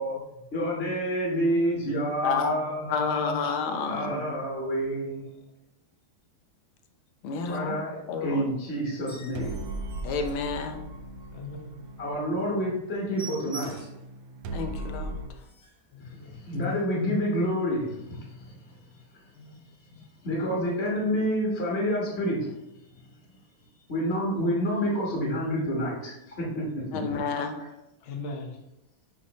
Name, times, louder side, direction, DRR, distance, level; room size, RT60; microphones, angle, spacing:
voice 1, 0.5-3.4 3.8-5.3 7.5-9.6 12.0-13.7 16.0-18.6 19.9-22.6 23.9-27.6, equal, 35° left, -4 dB, 1.3 m, -29 dB
voice 2, 1.3-1.6 1.9-2.3 2.5-3.4 5.3-5.5 11.3-11.8 15.9-16.3 19.3-19.6 28.0-28.6, left 2 dB, 55° left, 1 dB, 0.8 m, -43 dB
voice 3, 2.2-2.5 2.9-4.2 7.2-7.7 8.1-8.4 10.0-10.8 14.5-15.2 26.9-27.6, left 5 dB, 75° left, 6 dB, 1.5 m, -30 dB
sound 1, 8.9-11.1 11.5-11.6 12.0-12.1 12.4-12.5 12.8-14.1 14.6-14.7 15.0-15.1 15.3-15.9 16.6-16.8, right 4 dB, 10° left, 1.0 m, -46 dB
sound 2, 9.4-15.3, right 2 dB, 80° right, 1.4 m, -38 dB
6.3 x 5.4 x 3.0 m, 0.89 s
omnidirectional pair, 2.4 m